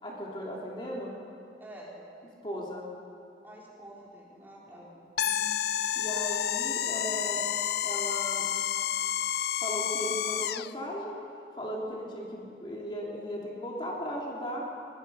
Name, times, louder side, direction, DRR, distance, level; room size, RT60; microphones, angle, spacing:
voice 1, 0.0-1.2 2.4-2.9 4.7-5.0 6.0-7.5 7.8-8.5 9.6-11.2 11.6-14.6, equal, 25° left, -4 dB, 3.2 m, -36 dB
voice 2, 1.6-2.0 3.4-4.9 5.2-5.6, right 1 dB, 10° right, -4 dB, 3.9 m, -48 dB
sound 1, 5.2-10.7, left 10 dB, 60° left, 0.4 m, -30 dB
22.5 x 22.5 x 5.7 m, 2.6 s
head